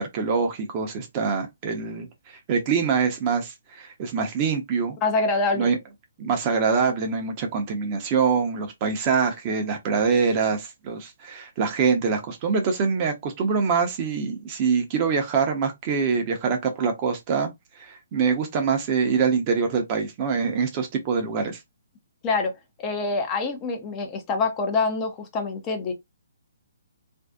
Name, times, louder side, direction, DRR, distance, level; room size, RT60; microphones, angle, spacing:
voice 1, 0.0-5.0 5.6-5.8 6.2-17.5 17.8-21.6, right 5 dB, 30° right, 0.8 m, -24 dB
voice 2, 5.0-5.7 22.2-22.5 22.8-25.9, left 3 dB, 25° left, 0.6 m, -25 dB
2.6 x 2.4 x 2.3 m
figure-of-eight pair, 135°, 0 cm